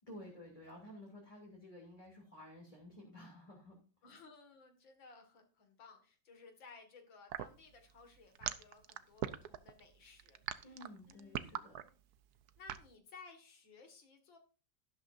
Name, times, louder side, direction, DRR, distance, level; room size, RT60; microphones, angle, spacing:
voice 1, 0.1-3.8 10.6-11.8, left 1 dB, 20° left, -2 dB, 2.9 m, -53 dB
voice 2, 4.0-10.7 11.1-11.4 11.9-12.0 12.6-14.4, left 4 dB, 75° left, 5 dB, 2.7 m, -58 dB
sound 1, 7.3-12.9, right 11 dB, 65° right, 1.1 m, -41 dB
12.5 x 12.0 x 2.6 m, 0.36 s
omnidirectional pair, 2.1 m